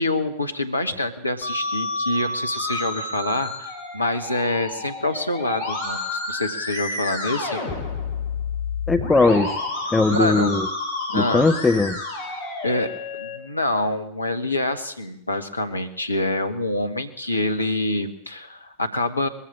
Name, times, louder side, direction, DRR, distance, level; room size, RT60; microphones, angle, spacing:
voice 1, 0.0-7.6 10.1-10.5 11.1-11.5 12.6-19.3, left 2 dB, 80° left, 8 dB, 1.6 m, -26 dB
Musical instrument, 1.4-13.4, left 3 dB, 60° left, 6.1 m, -30 dB
voice 2, 8.9-9.5 9.9-10.7 11.1-12.0, left 3 dB, 10° left, 8 dB, 1.0 m, -19 dB
21.5 x 15.0 x 8.6 m, 0.75 s
figure-of-eight pair, 90°, 0 cm